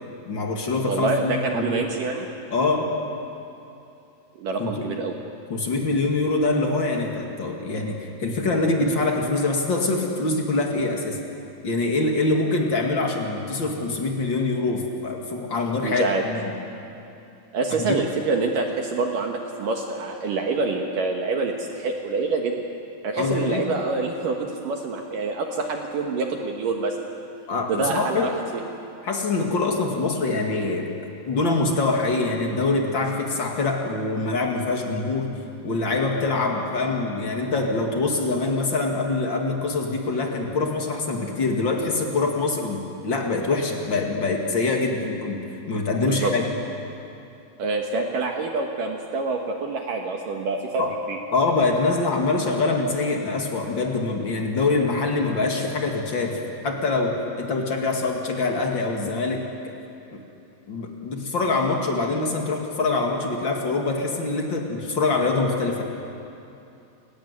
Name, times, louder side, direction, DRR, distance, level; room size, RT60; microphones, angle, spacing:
voice 1, 0.2-1.8 2.5-2.9 4.6-4.8 5.5-11.2 11.6-16.5 17.9-18.0 23.2-23.7 27.5-28.3 29.0-30.9 31.3-35.3 35.6-45.4 45.7-46.5 50.8-50.9 51.3-56.4 56.6-59.7 60.7-65.8, left 3 dB, 45° left, 1 dB, 1.6 m, -24 dB
voice 2, 0.8-2.3 4.4-5.1 15.8-16.2 17.5-22.7 23.0-27.0 27.7-28.6 46.0-46.3 47.6-50.8 51.1-51.2, right 3 dB, 65° right, 2 dB, 2.3 m, -26 dB
29.5 x 15.5 x 9.6 m, 2.8 s
omnidirectional pair, 5.4 m